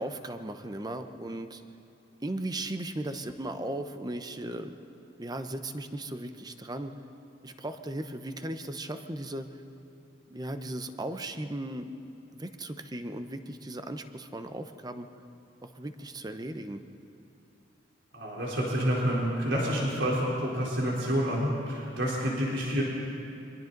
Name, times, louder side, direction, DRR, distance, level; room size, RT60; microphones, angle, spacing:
voice 1, 0.0-1.6 2.2-4.8 5.2-6.9 7.4-9.6 10.3-11.9 12.3-15.1 15.6-16.8, right 1 dB, 20° right, 8 dB, 0.9 m, -37 dB
voice 2, 18.1-22.8, equal, 90° right, -4 dB, 3.9 m, -28 dB
29.5 x 24.0 x 4.0 m, 2.8 s
head